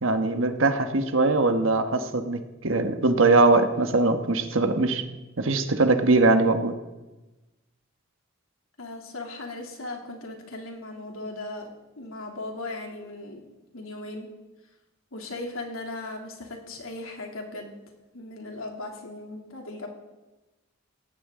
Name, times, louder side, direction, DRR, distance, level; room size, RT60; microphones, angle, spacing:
voice 1, 0.0-5.0 5.4-6.7, right 3 dB, 65° right, 7 dB, 1.3 m, -21 dB
voice 2, 8.8-13.4 13.7-14.3 15.1-17.8 18.1-19.9, left 2 dB, 80° left, 2 dB, 2.9 m, -37 dB
17.5 x 15.5 x 3.8 m, 1.1 s
head